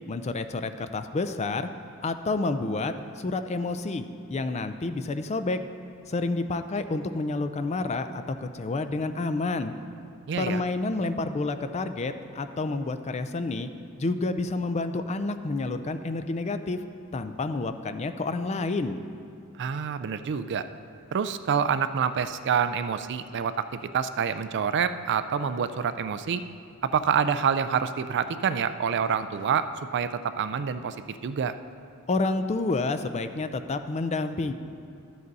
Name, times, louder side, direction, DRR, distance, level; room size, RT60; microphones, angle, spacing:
voice 1, 0.1-1.7 2.0-5.6 6.1-9.7 10.4-13.7 14.0-16.8 17.1-19.0 32.1-34.5, left 3 dB, 30° left, 10 dB, 0.4 m, -29 dB
voice 2, 10.3-10.6 19.6-20.7 21.1-26.4 26.8-29.7 29.9-31.6, right 7 dB, 50° right, 12 dB, 0.4 m, -27 dB
12.5 x 7.7 x 4.0 m, 2.4 s
head